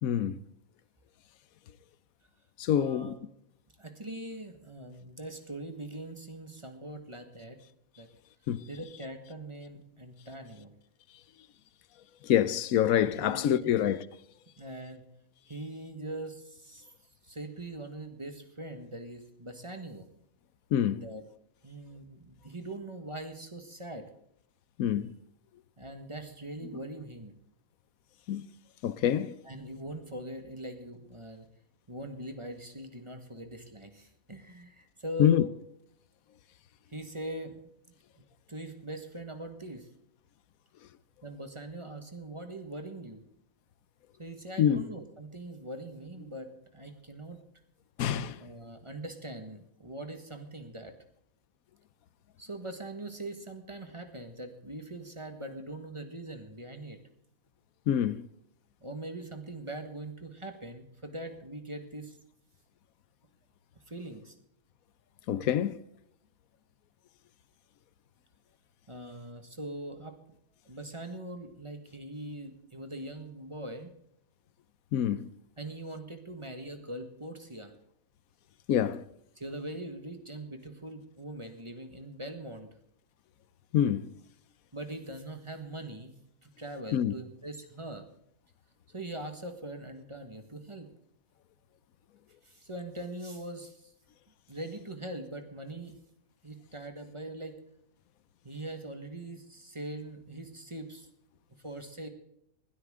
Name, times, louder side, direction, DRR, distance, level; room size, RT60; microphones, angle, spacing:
voice 1, 0.0-0.4 2.6-3.2 8.5-8.6 12.2-14.0 20.7-21.1 24.8-25.1 28.3-28.5 28.8-29.4 35.2-35.4 44.6-44.9 48.0-48.4 57.9-58.3 65.3-65.8 74.9-75.3 78.7-79.0 83.7-84.1 86.9-87.1, left 10 dB, 90° left, 1.1 m, -26 dB
voice 2, 2.7-3.2 3.8-7.6 8.0-8.1 8.7-10.7 13.0-13.7 14.6-15.0 15.5-16.9 17.2-20.1 21.0-21.2 21.6-24.1 25.8-27.3 29.4-31.5 31.9-35.5 36.9-37.6 38.2-38.3 38.5-39.9 41.2-43.2 44.2-47.4 48.4-50.9 52.4-57.0 58.8-62.2 63.9-64.3 68.9-70.2 70.6-73.9 75.6-77.7 79.4-82.7 84.7-86.1 86.4-88.0 88.9-90.9 92.4-93.9 94.5-96.0 96.4-97.6 98.4-101.1 101.6-102.1, right 1 dB, 20° right, 1.6 m, -42 dB
20.5 x 12.5 x 3.7 m
omnidirectional pair, 1.4 m